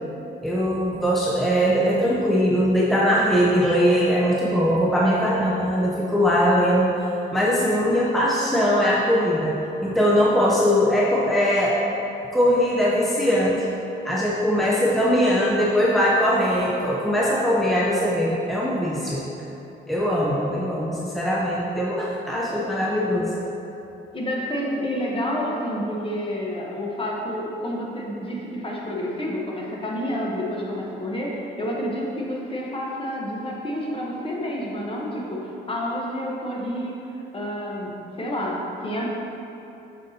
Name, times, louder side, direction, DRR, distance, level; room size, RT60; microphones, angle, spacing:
voice 1, 0.4-9.6 9.8-11.8 12.3-13.7 14.0-19.2 19.9-23.3, equal, ahead, -6 dB, 0.6 m, -21 dB
voice 2, 24.1-37.0 37.3-39.1, equal, 25° left, -3 dB, 1.0 m, -29 dB
6.5 x 5.1 x 2.8 m, 2.9 s
cardioid pair, 90°, 20 cm